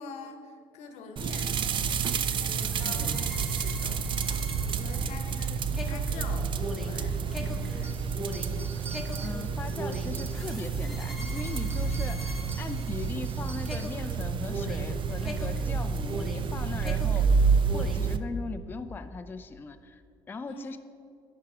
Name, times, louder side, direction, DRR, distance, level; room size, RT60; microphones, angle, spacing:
voice 1, 0.0-4.0 4.4-8.0 20.4-20.8, left 4 dB, 75° left, 7 dB, 0.9 m, -45 dB
sound 1, 1.2-18.2, right 5 dB, 45° right, 0.5 m, -29 dB
sound 2, 2.4-13.3 13.7-16.5 16.8-18.1, equal, ahead, 1.1 m, -41 dB
sound 3, 7.8-10.7 11.1-14.1, right 5 dB, 20° right, 0.8 m, -48 dB
voice 2, 9.2-17.3 17.7-20.0 20.3-20.8, left 4 dB, 20° left, 9 dB, 0.4 m, -39 dB
10.5 x 4.7 x 4.8 m, 2.6 s
supercardioid pair, 80°, 11 cm